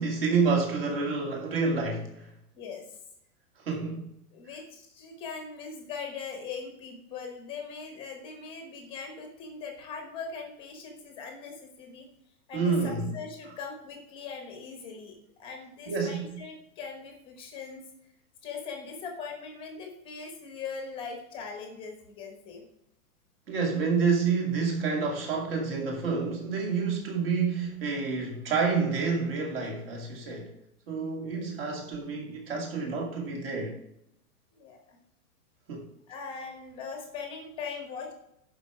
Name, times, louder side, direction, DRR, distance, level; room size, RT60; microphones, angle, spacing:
voice 1, 0.0-2.3 3.6-4.1 12.5-13.1 15.9-16.4 23.5-30.5 30.9-33.8 35.7-35.9, right 4 dB, 40° right, 2.4 m, -28 dB
voice 2, 2.6-3.0 4.3-12.1 12.5-17.8 18.4-22.6 31.3-31.5 34.5-35.0 36.1-38.1, left 5 dB, 10° left, 1.1 m, -40 dB
11.5 x 5.0 x 4.9 m
hypercardioid pair, 175°, 45 cm